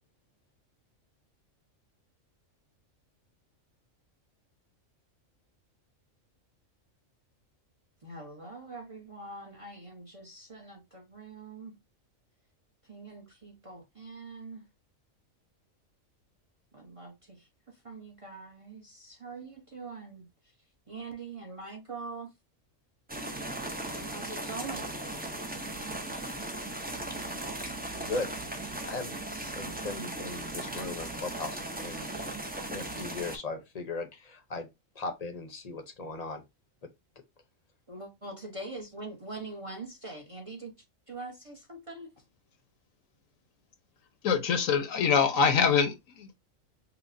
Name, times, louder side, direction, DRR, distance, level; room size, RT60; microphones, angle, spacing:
voice 1, 8.0-11.7 12.9-14.7 16.7-20.3 20.9-22.3 24.1-25.0 37.9-42.1, right 3 dB, 30° right, 0.8 m, -43 dB
sound 1, 23.1-33.4, right 1 dB, 15° right, 0.3 m, -37 dB
voice 2, 27.1-27.5 27.9-28.3 28.9-29.2 29.6-32.2 32.7-34.7 34.9-36.4, left 3 dB, 35° left, 0.7 m, -38 dB
voice 3, 44.2-46.3, left 6 dB, 75° left, 1.2 m, -24 dB
5.7 x 2.2 x 2.6 m
omnidirectional pair, 1.4 m